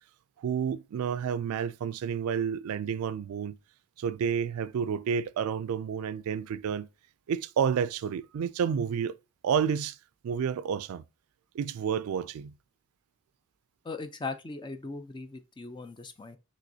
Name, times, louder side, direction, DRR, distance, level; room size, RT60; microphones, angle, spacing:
voice 1, 0.4-3.6 4.0-6.9 7.3-9.2 9.4-10.0 10.2-11.0 11.5-12.5, right 7 dB, 80° right, 0.3 m, -30 dB
voice 2, 13.8-16.4, left 3 dB, 20° left, 0.4 m, -39 dB
6.0 x 3.0 x 2.7 m
head